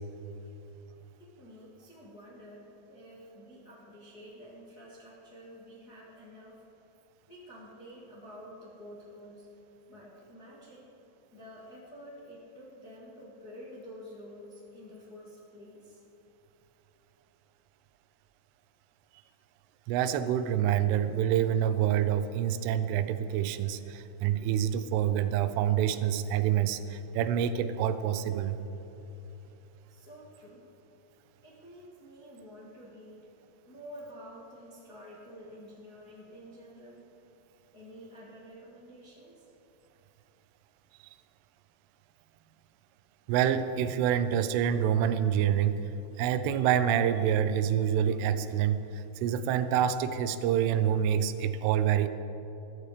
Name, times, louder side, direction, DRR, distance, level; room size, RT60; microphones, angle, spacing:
voice 1, 1.2-6.6 7.3-9.5 9.9-10.9 11.3-16.0 29.9-30.7 31.4-33.2 33.6-37.0 37.7-39.5, equal, 40° left, -6 dB, 1.3 m, -49 dB
voice 2, 19.9-28.6 43.3-45.9 46.2-52.1, right 9 dB, 85° right, 11 dB, 3.3 m, -27 dB
22.0 x 13.0 x 5.0 m, 3.0 s
omnidirectional pair, 5.6 m